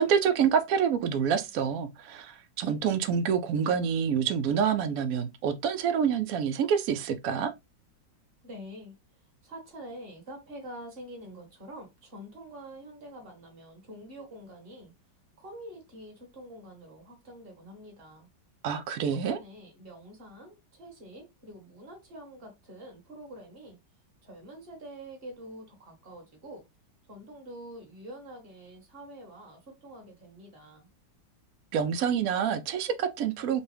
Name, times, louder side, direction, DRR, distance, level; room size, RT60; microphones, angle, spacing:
voice 1, 0.0-7.5 18.6-19.4 31.7-33.6, right 7 dB, 75° right, 0.8 m, -27 dB
voice 2, 8.4-8.9 9.4-14.9 15.4-18.3 19.1-23.8 24.2-26.7 27.1-30.9, right 1 dB, 30° right, 1.4 m, -46 dB
5.3 x 2.2 x 3.3 m
omnidirectional pair, 2.1 m